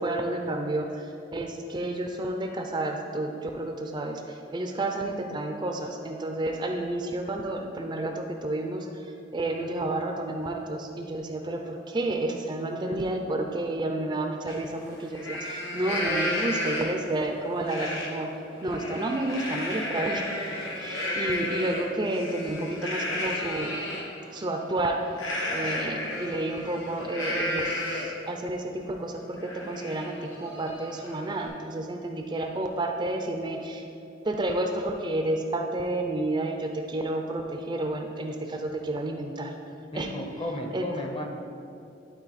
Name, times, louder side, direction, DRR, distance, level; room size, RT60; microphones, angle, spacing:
voice 1, 0.0-18.3 18.6-20.4 20.8-23.8 24.3-25.0 25.5-33.8 34.2-39.5 39.9-40.1 40.7-41.1, right 2 dB, 25° right, 4 dB, 0.4 m, -30 dB
Livestock farm animals working animals, 14.5-14.6 15.0-17.1 17.6-18.1 18.5-24.0 25.1-28.2 28.7-28.8 29.1-31.5, left 1 dB, 85° left, 1.5 m, -32 dB
voice 2, 39.9-41.3, left 1 dB, 30° left, 3 dB, 0.7 m, -34 dB
11.0 x 4.2 x 4.1 m, 2.6 s
head